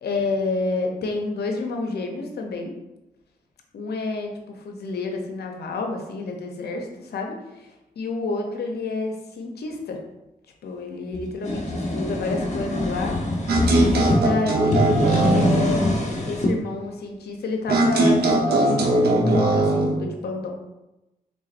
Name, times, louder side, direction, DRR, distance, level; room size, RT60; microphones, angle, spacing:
voice 1, 0.0-2.7 3.7-7.7 8.0-10.0 10.6-13.1 13.4-14.9 15.3-15.9 16.3-20.5, left 3 dB, 90° left, 2 dB, 0.6 m, -29 dB
sound 1, 11.1-14.2 14.6-16.5, left 1 dB, 45° left, 0.9 m, -24 dB
sound 2, 13.5-15.7 17.7-19.9, right 2 dB, 80° right, 0.8 m, -20 dB
3.9 x 3.5 x 2.5 m, 0.96 s
cardioid pair, 60°, 16 cm